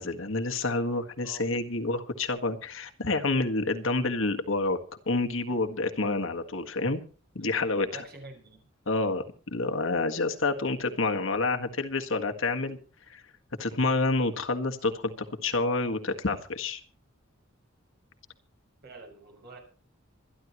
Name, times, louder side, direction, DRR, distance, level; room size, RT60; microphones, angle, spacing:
voice 1, 0.0-4.8 5.0-7.0 7.3-8.0 8.8-12.8 13.1-13.2 13.6-16.8, left 3 dB, 65° left, 5 dB, 1.7 m, -28 dB
voice 2, 7.4-8.6 18.8-19.6, right 2 dB, 50° right, 2 dB, 6.5 m, -47 dB
26.0 x 11.0 x 3.0 m, 0.40 s
head